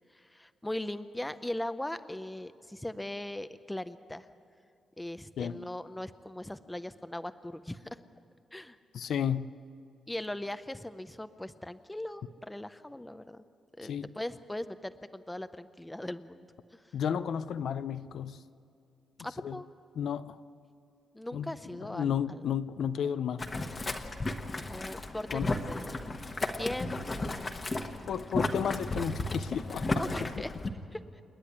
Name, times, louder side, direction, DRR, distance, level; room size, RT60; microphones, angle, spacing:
voice 1, 0.1-4.3 5.0-8.0 8.5-8.8 10.1-13.4 13.8-16.5 16.7-16.8 19.2-19.7 21.1-22.4 24.7-26.1 26.6-27.5 30.0-30.5 30.9-31.0, left 1 dB, 5° left, 0.6 m, -39 dB
voice 2, 8.9-9.5 13.8-14.1 16.9-18.4 19.4-19.6 20.0-20.4 21.3-21.5 21.8-23.5 25.3-25.5 28.1-29.9 30.2-30.3, left 8 dB, 65° left, 0.6 m, -32 dB
Boiling, 23.4-30.7, left 2 dB, 25° left, 1.1 m, -34 dB
29.0 x 10.0 x 9.9 m
wide cardioid pair, 160°, 0 cm